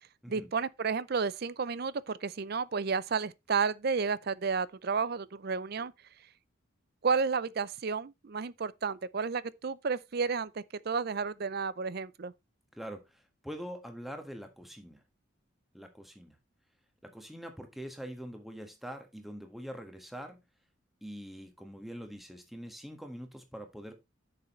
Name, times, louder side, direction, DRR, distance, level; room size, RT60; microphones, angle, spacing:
voice 1, 0.3-5.9 7.0-12.3, right 5 dB, 50° right, 0.5 m, -32 dB
voice 2, 12.7-15.0 15.7-16.4 17.0-20.4 21.0-23.9, equal, ahead, 1.5 m, -44 dB
9.6 x 6.7 x 3.1 m
head